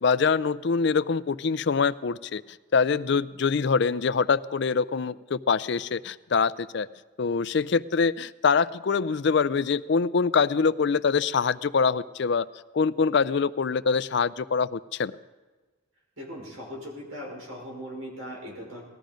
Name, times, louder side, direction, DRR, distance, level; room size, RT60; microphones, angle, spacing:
voice 1, 0.0-2.4 2.7-6.9 7.2-12.5 12.7-15.1, left 5 dB, 55° left, 16 dB, 0.4 m, -24 dB
voice 2, 16.2-18.8, equal, 80° right, -1 dB, 5.3 m, -39 dB
19.5 x 13.5 x 5.2 m, 1.3 s
head